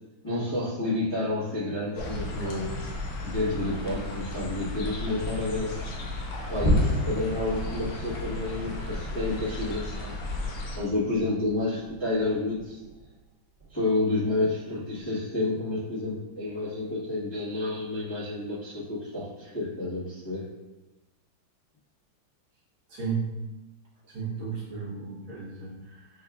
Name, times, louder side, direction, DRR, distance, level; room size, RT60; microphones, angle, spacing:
voice 1, 0.2-2.8 3.2-5.8 6.5-10.1 10.7-12.8 13.7-20.5, left 2 dB, 20° left, -12 dB, 0.7 m, -30 dB
sound 1, 2.0-10.8, left 2 dB, 70° left, 1.3 m, -35 dB
sound 2, 6.5-13.2 13.6-13.9 14.3-14.4 15.0-15.1, equal, 30° right, 1.3 m, -33 dB
voice 2, 22.9-23.3 24.1-26.2, right 5 dB, 75° right, -6 dB, 2.0 m, -34 dB
6.3 x 2.4 x 2.4 m, 1.1 s
omnidirectional pair, 2.4 m